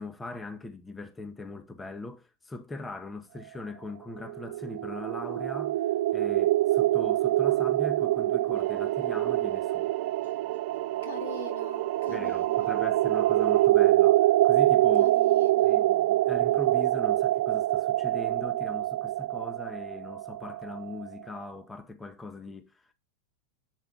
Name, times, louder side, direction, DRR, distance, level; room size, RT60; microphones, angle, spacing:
voice 1, 0.0-5.8 6.1-9.9 12.1-15.1 15.6-22.9, left 2 dB, 15° left, 1.3 m, -41 dB
sound 1, 4.3-21.1, right 15 dB, 70° right, 0.5 m, -25 dB
sound 2, 8.5-13.7, right 18 dB, 50° right, 0.8 m, -40 dB
voice 2, 11.0-12.8 15.0-15.9, left 5 dB, 75° left, 2.7 m, -43 dB
8.3 x 6.8 x 5.4 m
hypercardioid pair, 110°, 0 cm